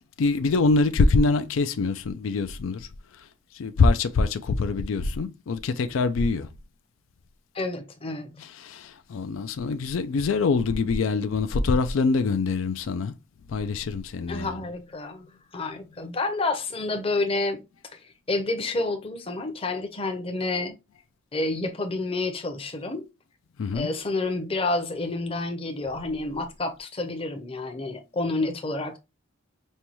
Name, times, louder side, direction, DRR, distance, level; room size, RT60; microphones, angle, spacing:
voice 1, 0.2-2.9 3.5-6.5 8.4-13.1 13.5-14.6 23.6-23.9, left 4 dB, 80° left, 0.4 m, -24 dB
voice 2, 7.5-8.3 14.3-15.3 15.5-17.6 18.3-20.8 21.3-23.0 23.7-29.0, left 2 dB, 30° left, 0.7 m, -29 dB
5.4 x 2.2 x 3.0 m
head